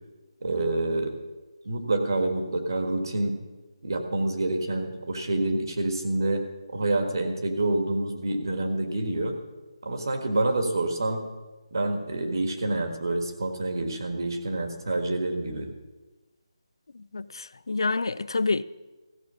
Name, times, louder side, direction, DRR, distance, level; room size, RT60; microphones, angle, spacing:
voice 1, 0.4-1.1 1.6-3.3 3.8-9.4 9.8-11.2 11.7-15.7, right 2 dB, 45° right, 1.6 m, -27 dB
voice 2, 17.1-18.6, left 3 dB, 60° left, 0.3 m, -27 dB
15.0 x 6.4 x 5.7 m
hypercardioid pair, 180°, 3 cm